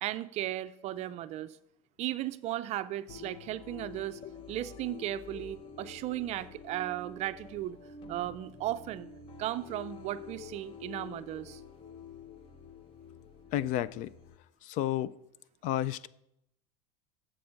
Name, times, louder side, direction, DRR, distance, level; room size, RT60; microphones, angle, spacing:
voice 1, 0.0-1.6 2.0-4.2 4.5-7.8 8.1-9.1 9.4-11.6, right 14 dB, 40° right, 13 dB, 0.4 m, -36 dB
sound 1, 3.1-14.4, left 5 dB, 30° left, 0.7 m, -48 dB
voice 2, 13.5-14.1 14.6-15.1 15.6-16.1, left 12 dB, 45° left, 19 dB, 0.4 m, -31 dB
7.5 x 6.9 x 6.4 m, 0.77 s
supercardioid pair, 140°, 18 cm